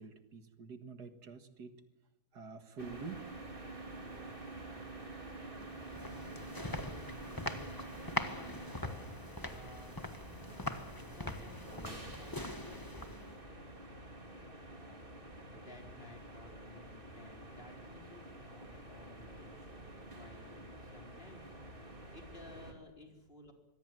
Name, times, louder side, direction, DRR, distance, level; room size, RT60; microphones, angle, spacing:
voice 1, 0.0-1.8 2.3-3.3, right 5 dB, 75° right, 8 dB, 2.4 m, -47 dB
sound 1, 2.8-22.7, right 2 dB, 30° right, 3.4 m, -48 dB
sound 2, 5.6-13.4, left 1 dB, 15° left, 1.5 m, -42 dB
voice 2, 7.9-8.6 9.4-10.0 11.1-13.7 14.6-15.0 15.5-19.7 20.1-23.5, left 1 dB, 35° left, 2 dB, 4.6 m, -57 dB
25.5 x 23.0 x 7.7 m, 1.1 s
omnidirectional pair, 1.7 m